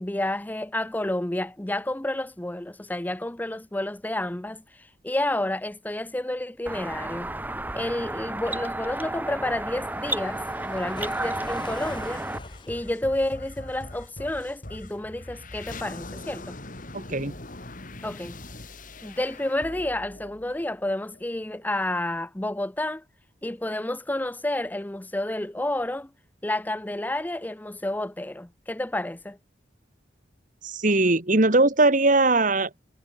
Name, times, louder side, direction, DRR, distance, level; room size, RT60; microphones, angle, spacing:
voice 1, 0.0-7.3 7.7-12.2 12.7-16.5 18.0-18.4 19.0-23.0 23.4-26.1 26.4-29.4, left 1 dB, 10° left, 0.6 m, -30 dB
sound 1, 6.7-12.4, right 2 dB, 10° right, 1.1 m, -32 dB
Waves surf, 9.8-13.1, left 2 dB, 25° left, 2.4 m, -44 dB
sound 2, 11.9-21.2, left 2 dB, 45° left, 3.0 m, -42 dB
voice 2, 16.9-17.3 30.6-32.8, right 2 dB, 45° right, 2.0 m, -20 dB
head